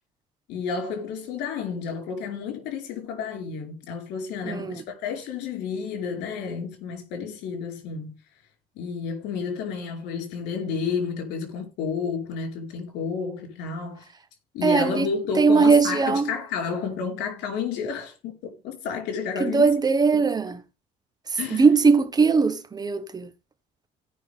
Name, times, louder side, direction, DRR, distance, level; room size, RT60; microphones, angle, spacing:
voice 1, 0.5-8.1 8.8-14.1 14.5-19.7 20.1-20.2 21.3-21.7, left 5 dB, 85° left, 4.6 m, -31 dB
voice 2, 4.4-4.8 14.6-15.1 15.4-16.3 19.4-20.6 21.3-23.3, right 4 dB, 25° right, 1.3 m, -20 dB
17.0 x 5.9 x 3.6 m
cardioid pair, 110°, 17 cm